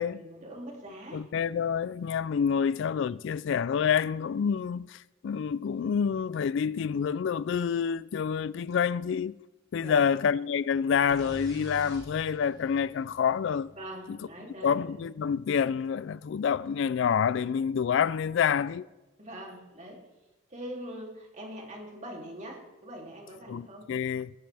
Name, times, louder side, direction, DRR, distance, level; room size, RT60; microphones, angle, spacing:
voice 1, 0.0-1.3 2.5-2.7 9.8-10.1 13.7-14.9 19.2-20.0 20.5-23.9, equal, 35° right, 3.0 m, -43 dB
voice 2, 1.1-9.4 9.7-13.7 14.1-14.2 14.6-18.8 23.5-24.3, left 7 dB, 65° left, 0.3 m, -28 dB
sound 1, 11.1-14.8, left 1 dB, 20° right, 3.5 m, -47 dB
21.0 x 13.0 x 3.4 m
head